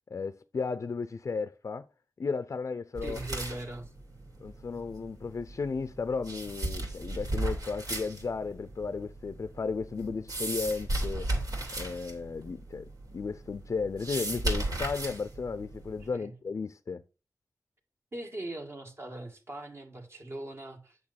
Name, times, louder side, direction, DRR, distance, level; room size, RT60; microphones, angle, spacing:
voice 1, 0.1-1.9 2.2-3.2 4.4-11.3 11.7-17.0, left 4 dB, 55° left, 0.5 m, -34 dB
voice 2, 3.0-3.9 16.1-16.3 18.1-21.0, right 1 dB, 45° right, 1.9 m, -40 dB
sound 1, 3.0-16.1, right 1 dB, 85° right, 3.1 m, -36 dB
8.6 x 6.7 x 4.2 m
wide cardioid pair, 85°, 6 cm